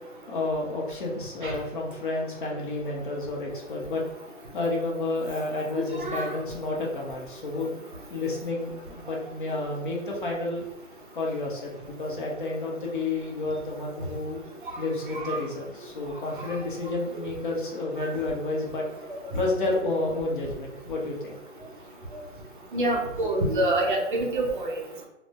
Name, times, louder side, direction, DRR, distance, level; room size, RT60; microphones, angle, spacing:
voice 1, 0.3-4.0 4.5-7.7 8.1-10.6 11.1-14.4 14.8-18.8 19.3-21.4, left 2 dB, 40° left, -1 dB, 0.6 m, -30 dB
voice 2, 6.0-6.3 15.1-15.4 22.7-25.0, right 1 dB, 45° right, 0 dB, 0.5 m, -26 dB
2.2 x 2.0 x 2.7 m, 0.92 s
hypercardioid pair, 165°, 38 cm